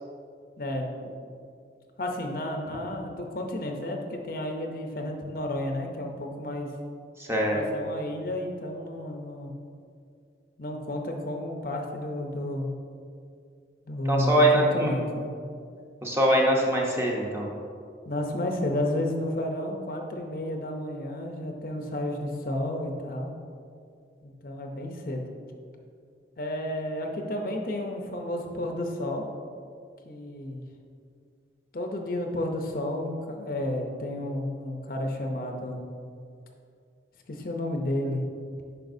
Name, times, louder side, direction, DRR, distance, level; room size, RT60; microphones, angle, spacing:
voice 1, 0.6-0.9 2.0-6.7 7.5-9.5 10.6-12.7 13.9-15.3 18.1-23.3 24.2-25.2 26.4-29.2 30.0-30.6 31.7-35.8 37.3-38.2, left 1 dB, 55° left, 2 dB, 0.6 m, -31 dB
voice 2, 7.2-7.6 14.1-14.9 16.0-17.5, right 1 dB, 15° right, -2 dB, 0.8 m, -23 dB
9.0 x 5.7 x 2.7 m, 2.3 s
head